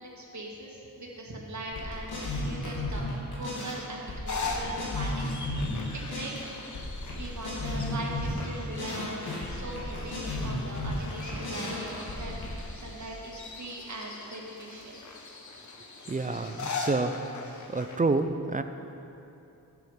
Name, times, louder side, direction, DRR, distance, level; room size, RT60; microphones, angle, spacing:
voice 1, 0.0-5.3 5.9-6.3 7.2-15.0, right 2 dB, 50° right, -1 dB, 1.5 m, -40 dB
sound 1, 1.7-3.8 4.1-6.4 6.7-8.5 8.8-12.6, left 2 dB, 90° left, 2.0 m, -34 dB
sound 2, 4.3-18.0, left 4 dB, 50° left, 0.9 m, -41 dB
voice 2, 16.1-17.2 17.7-18.6, right 3 dB, 25° right, 9 dB, 0.3 m, -28 dB
7.9 x 6.9 x 5.4 m, 2.9 s
wide cardioid pair, 90°, 36 cm